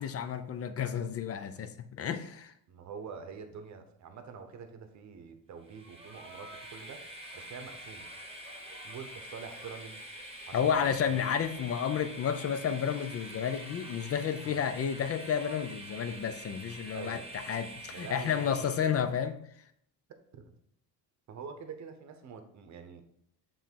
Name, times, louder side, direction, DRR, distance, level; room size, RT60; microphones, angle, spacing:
voice 1, 0.0-2.5 10.5-19.4, left 7 dB, 35° left, 10 dB, 0.5 m, -31 dB
voice 2, 2.7-7.1 7.3-8.1 8.8-11.3 14.4-14.6 16.9-17.2 17.9-18.9 20.3-20.5 21.3-23.0, right 6 dB, 45° right, 7 dB, 0.9 m, -46 dB
Train, 5.6-19.1, right 1 dB, 15° right, 1.0 m, -46 dB
7.4 x 3.0 x 4.5 m, 0.69 s
cardioid pair, 115°, 40 cm